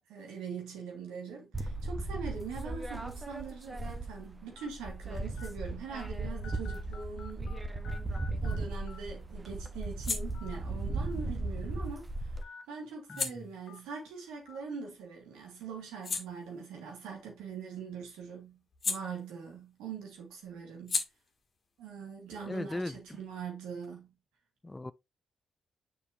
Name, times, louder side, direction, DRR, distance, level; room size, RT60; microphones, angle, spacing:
voice 1, 0.0-7.6 8.4-12.3 12.7-18.6 18.9-21.0 21.8-24.1, right 5 dB, 85° right, 2.2 m, -42 dB
sound 1, 1.5-4.4 4.7-12.4, right 2 dB, 25° right, 1.2 m, -37 dB
sound 2, 2.4-2.6 3.4-3.5 4.6-4.7 5.4-5.5 5.9-6.1 6.4-7.6 7.8-8.6 8.9-9.0 10.3-10.6 10.9-11.0 12.4-12.6 13.1-13.2 13.7-13.8 14.5-14.6, left 5 dB, 65° left, 0.8 m, -49 dB
sound 3, 8.3-15.1 15.5-19.8 20.0-23.4, left 4 dB, 50° left, 1.5 m, -42 dB
voice 2, 13.1-13.5 22.4-23.2 24.6-24.9, left 2 dB, 25° left, 0.4 m, -38 dB
6.8 x 5.5 x 2.8 m
hypercardioid pair, 45°, 0 cm